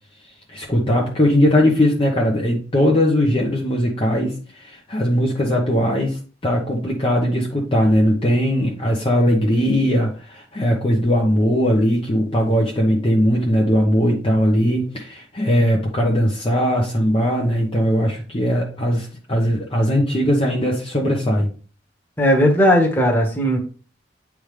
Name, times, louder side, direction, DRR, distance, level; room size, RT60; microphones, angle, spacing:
voice 1, 0.5-21.5, equal, 30° left, -2 dB, 1.0 m, -19 dB
voice 2, 22.2-23.6, equal, 10° left, -1 dB, 1.4 m, -16 dB
8.8 x 3.6 x 3.3 m, 0.38 s
head